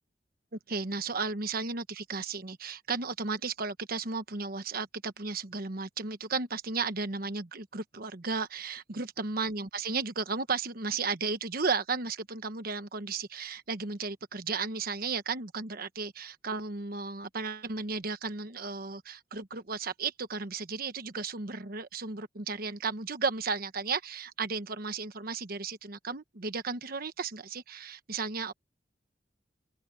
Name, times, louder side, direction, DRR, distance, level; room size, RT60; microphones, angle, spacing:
voice 1, 0.7-28.5, right 4 dB, 55° right, 1.2 m, -34 dB
head